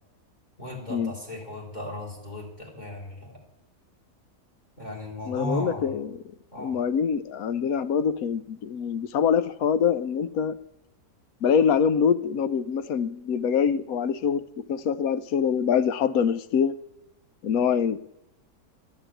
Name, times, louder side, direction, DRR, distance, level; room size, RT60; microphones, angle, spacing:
voice 1, 0.6-3.4 4.8-5.9 6.5-6.8, equal, 25° left, 0 dB, 3.3 m, -36 dB
voice 2, 5.3-6.1 6.6-10.6 11.4-16.7 17.4-18.0, left 7 dB, 70° left, 14 dB, 1.1 m, -24 dB
12.0 x 8.6 x 8.9 m, 0.86 s
omnidirectional pair, 1.7 m